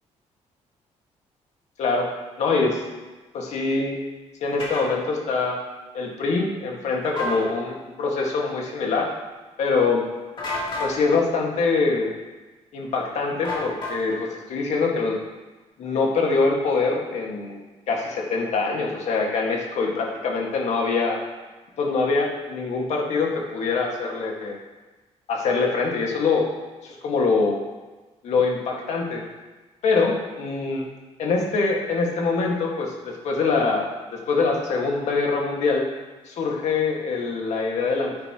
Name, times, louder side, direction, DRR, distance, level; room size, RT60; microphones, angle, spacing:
voice 1, 2.4-2.8 3.3-3.9 4.4-5.6 5.9-9.1 9.6-10.0 10.8-12.1 12.7-15.2 15.8-17.6 17.9-21.2 21.8-24.6 25.3-26.4 26.8-27.6 28.2-29.2 29.8-30.8 31.2-35.9 36.2-38.1, left 4 dB, 65° left, -1 dB, 1.7 m, -24 dB
sound 1, 4.6-4.9 7.0-7.4 10.4-10.9 13.4-14.2, left 2 dB, 40° left, 2.5 m, -30 dB
9.6 x 9.4 x 3.0 m, 1.2 s
cardioid pair, 165°, 12 cm